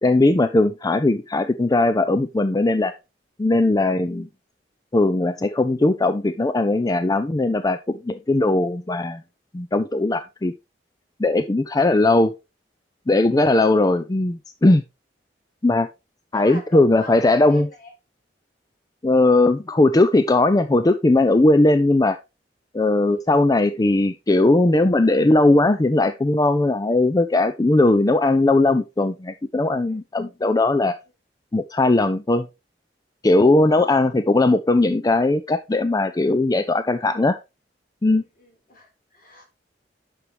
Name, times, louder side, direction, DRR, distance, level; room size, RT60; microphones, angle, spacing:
voice 1, 0.0-2.9 3.4-4.3 4.9-9.2 9.5-10.5 11.2-12.3 13.1-14.8 15.6-15.9 16.3-17.7 19.0-22.2 22.7-31.0 31.5-32.5 33.2-37.4 38.0-38.2, left 2 dB, 20° left, 0.5 m, -19 dB
voice 2, 16.3-17.9 29.8-30.0 33.6-34.1 38.4-39.4, left 2 dB, 55° left, 4.0 m, -41 dB
9.8 x 6.2 x 3.2 m
head